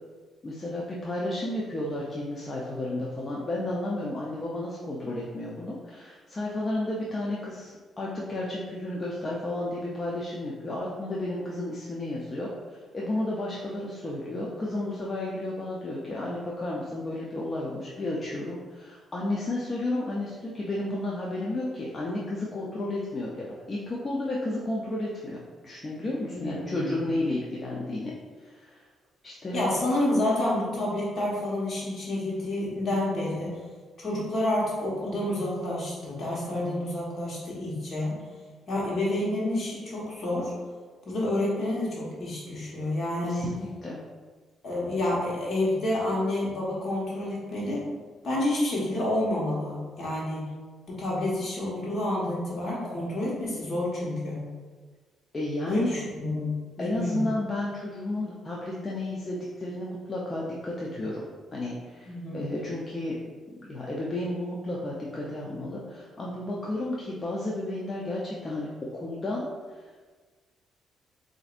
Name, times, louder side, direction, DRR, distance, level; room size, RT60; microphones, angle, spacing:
voice 1, 0.4-25.4 25.6-28.1 28.4-28.9 29.2-29.7 43.2-44.0 55.3-56.0 56.8-63.1 63.6-68.7 69.0-69.9, left 1 dB, 30° left, -4 dB, 0.5 m, -32 dB
voice 2, 26.3-27.0 29.5-33.5 34.0-38.2 38.7-40.5 41.0-43.5 44.6-47.8 48.2-50.5 50.9-54.5 55.7-57.3 62.0-62.4, left 1 dB, 50° left, -5 dB, 1.3 m, -29 dB
4.0 x 2.6 x 2.5 m, 1.4 s
cardioid pair, 90°, 0 cm